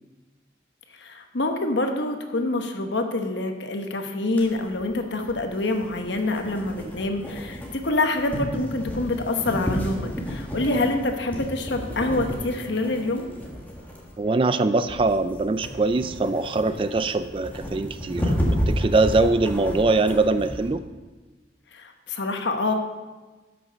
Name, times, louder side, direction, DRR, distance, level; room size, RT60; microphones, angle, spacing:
voice 1, 1.0-13.3 21.7-22.7, left 2 dB, 70° left, 5 dB, 1.1 m, -26 dB
sound 1, 4.4-20.7, equal, 10° left, 1.5 m, -32 dB
voice 2, 14.2-18.4 18.7-20.8, right 3 dB, 30° right, 12 dB, 0.3 m, -22 dB
12.0 x 6.1 x 5.1 m, 1.2 s
head